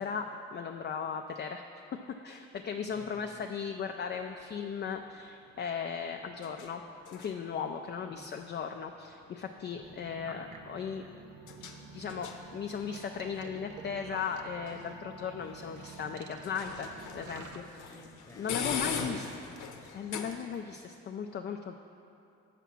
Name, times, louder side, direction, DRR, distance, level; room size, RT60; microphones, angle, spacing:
voice 1, 0.0-1.6 2.2-6.8 7.1-11.0 11.9-18.0 18.4-19.3 19.9-21.8, left 6 dB, 35° left, 4 dB, 0.4 m, -37 dB
voice 2, 2.9-3.5 8.0-8.4 17.9-19.9, left 3 dB, 10° left, 2 dB, 0.8 m, -53 dB
sound 1, 3.3-20.8, left 6 dB, 80° left, 0.8 m, -44 dB
sound 2, 9.7-17.6, right 6 dB, 70° right, 0.7 m, -50 dB
7.0 x 5.9 x 5.9 m, 2.6 s
cardioid pair, 90°, 30 cm